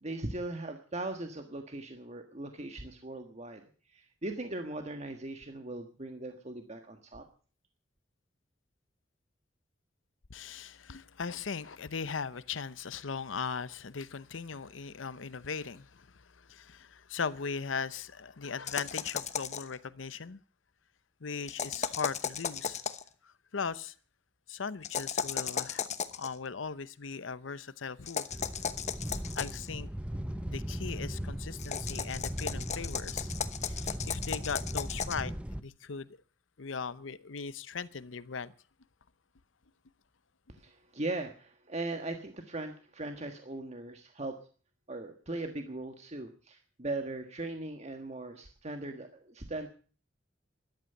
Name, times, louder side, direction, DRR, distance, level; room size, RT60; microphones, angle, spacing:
voice 1, 0.0-3.6 3.9-7.2 40.5-44.4 44.9-49.7, right 2 dB, 35° right, 1.5 m, -39 dB
voice 2, 10.3-20.4 21.2-22.8 23.2-23.9 24.5-25.9 26.1-28.3 29.3-29.9 30.4-33.3 33.6-35.3 35.6-36.1 36.6-38.5, left 5 dB, 90° left, 0.8 m, -39 dB
sound 1, 18.7-19.7 21.5-23.1 24.8-26.3 28.1-29.7 31.6-35.2, left 7 dB, 40° left, 1.0 m, -35 dB
sound 2, 28.3-35.6, equal, 5° right, 0.8 m, -38 dB
14.0 x 12.0 x 7.9 m
head